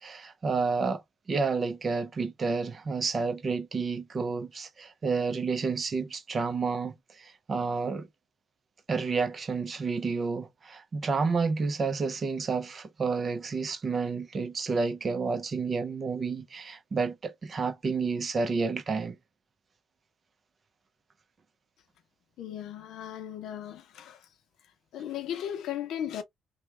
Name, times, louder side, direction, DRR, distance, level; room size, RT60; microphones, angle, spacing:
voice 1, 0.0-1.0 1.3-8.1 8.9-19.2, right 4 dB, 40° right, 0.7 m, -30 dB
voice 2, 22.4-24.3 24.9-26.2, left 10 dB, 80° left, 0.6 m, -36 dB
3.1 x 2.2 x 3.2 m
cardioid pair, 90°, 0 cm